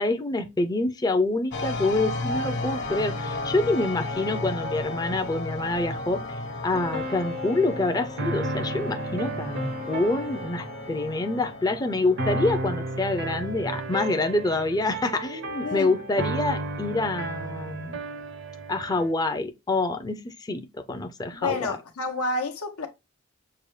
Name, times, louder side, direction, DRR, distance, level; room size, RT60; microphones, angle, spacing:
voice 1, 0.0-18.0 18.7-21.8, left 2 dB, 15° left, 0.4 m, -27 dB
sound 1, 1.5-12.7, left 2 dB, 50° left, 1.0 m, -34 dB
sound 2, 6.7-19.1, right 1 dB, 50° right, 0.5 m, -33 dB
voice 2, 15.6-16.3 21.4-22.9, left 3 dB, 85° left, 1.0 m, -30 dB
6.6 x 2.2 x 3.1 m
head